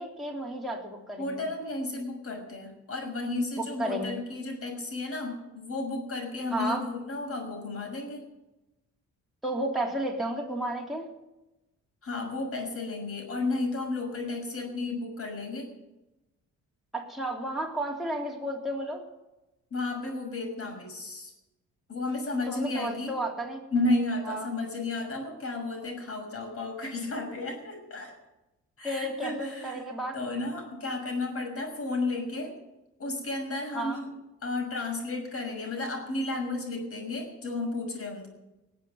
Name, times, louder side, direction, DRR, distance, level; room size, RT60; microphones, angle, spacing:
voice 1, 0.0-1.5 3.6-4.1 6.5-6.8 9.4-11.1 16.9-19.0 22.5-23.6 24.3-24.5 28.8-30.2 33.7-34.0, right 1 dB, ahead, -2 dB, 3.5 m, -32 dB
voice 2, 1.2-8.2 12.0-15.7 19.7-21.3 21.9-23.1 23.7-28.2 28.8-29.8 30.1-32.5 33.0-34.1 34.4-38.3, left 2 dB, 50° left, 3 dB, 6.1 m, -33 dB
19.5 x 7.7 x 9.5 m, 0.99 s
cardioid pair, 90°, 30 cm